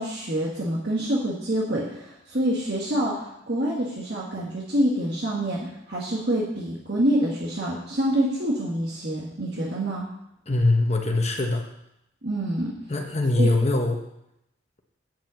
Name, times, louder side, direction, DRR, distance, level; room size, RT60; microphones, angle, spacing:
voice 1, 0.0-10.0 12.2-12.7 13.4-13.5, right 1 dB, 55° right, -4 dB, 1.7 m, -26 dB
voice 2, 10.5-11.7 12.9-14.0, left 2 dB, 35° left, 3 dB, 1.1 m, -22 dB
9.1 x 5.6 x 7.6 m, 0.81 s
head